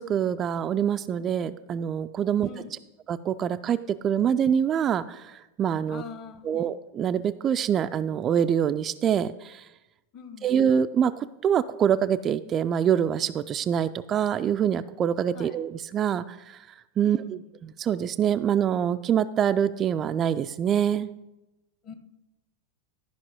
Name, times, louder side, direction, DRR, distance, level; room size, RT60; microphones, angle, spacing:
voice 1, 0.0-2.5 3.1-6.0 6.4-9.7 10.4-16.6 17.0-17.2 17.6-21.1, right 8 dB, 25° right, 11 dB, 0.3 m, -25 dB
voice 2, 2.4-2.8 5.9-6.6 10.1-10.5 15.3-15.6 17.0-17.4 21.8-21.9, left 7 dB, 35° left, 9 dB, 1.1 m, -43 dB
12.5 x 5.3 x 5.1 m, 0.97 s
figure-of-eight pair, 90°, 0 cm